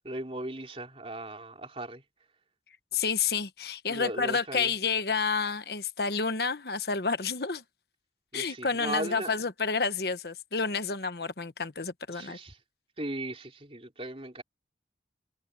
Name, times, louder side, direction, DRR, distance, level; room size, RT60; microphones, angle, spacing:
voice 1, 0.0-2.0 3.9-4.7 8.3-9.3 12.1-12.6 13.0-14.4, right 1 dB, 35° right, 3.6 m, -37 dB
voice 2, 2.9-7.6 8.3-12.4, left 5 dB, 65° left, 1.2 m, -30 dB
head